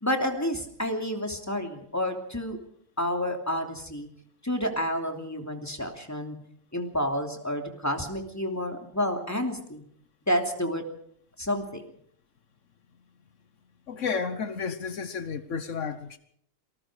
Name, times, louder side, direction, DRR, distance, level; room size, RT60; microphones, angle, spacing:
voice 1, 0.0-2.6 3.0-4.1 4.4-6.4 6.7-9.8 10.3-10.8 11.4-11.8, equal, 10° left, 2.9 m, -29 dB
voice 2, 13.9-16.2, left 5 dB, 70° left, 1.4 m, -32 dB
27.0 x 19.5 x 5.0 m
omnidirectional pair, 1.3 m